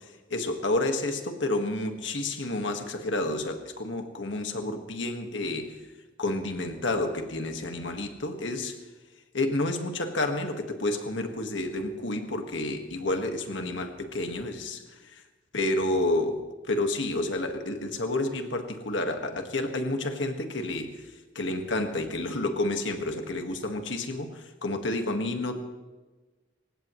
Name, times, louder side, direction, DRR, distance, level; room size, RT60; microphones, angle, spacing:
voice 1, 0.3-5.8 6.2-8.8 9.3-15.2 15.5-16.4 16.7-21.1 21.4-25.6, left 2 dB, 90° left, 5 dB, 1.7 m, -30 dB
27.5 x 16.0 x 3.2 m, 1.2 s
head